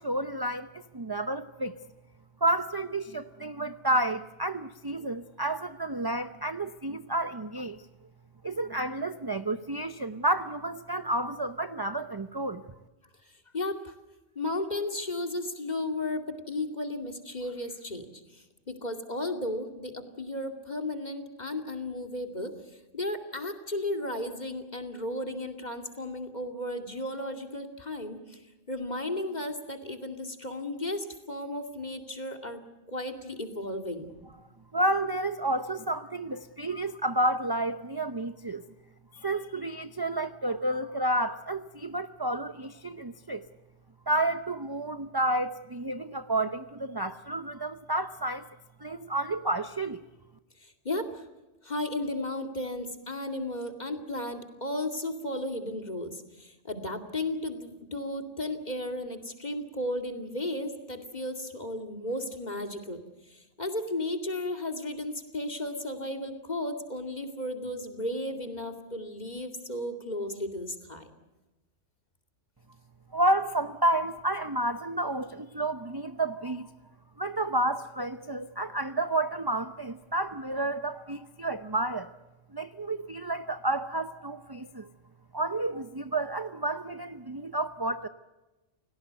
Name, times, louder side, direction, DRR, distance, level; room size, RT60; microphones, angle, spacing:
voice 1, 0.0-1.7 2.4-7.8 8.4-12.6 34.7-38.7 39.1-43.4 44.1-48.5 48.8-50.0 73.1-76.7 77.2-82.1 82.5-84.9 85.3-88.1, right 1 dB, 25° right, 10 dB, 0.7 m, -30 dB
voice 2, 13.2-13.9 14.3-28.4 28.7-32.6 32.9-34.1 50.6-51.2 51.6-71.1, left 1 dB, 35° left, 5 dB, 2.6 m, -34 dB
29.5 x 18.0 x 8.2 m, 1.1 s
omnidirectional pair, 1.2 m